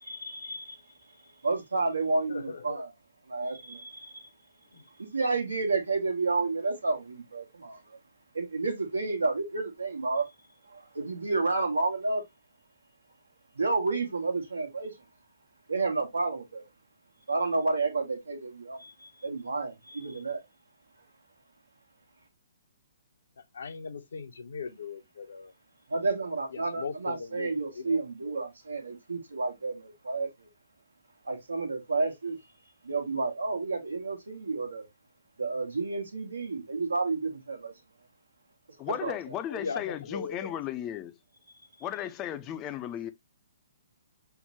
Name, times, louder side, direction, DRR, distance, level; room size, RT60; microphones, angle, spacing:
voice 1, 0.0-0.8 1.4-2.9 3.3-4.2 5.0-8.0 8.3-10.3 10.7-12.2 13.5-14.9 15.7-16.7 17.3-20.4 25.9-30.5 31.2-32.4 32.8-34.9 35.4-37.7 38.9-39.2, right 3 dB, 75° right, 1.1 m, -30 dB
voice 2, 2.3-2.8 4.7-4.8 23.5-25.5 26.5-28.0 39.5-40.5, left 5 dB, 65° left, 0.7 m, -39 dB
voice 3, 38.8-41.1 41.8-43.1, left 11 dB, 25° left, 0.4 m, -35 dB
5.6 x 2.1 x 2.8 m
figure-of-eight pair, 125°, 0 cm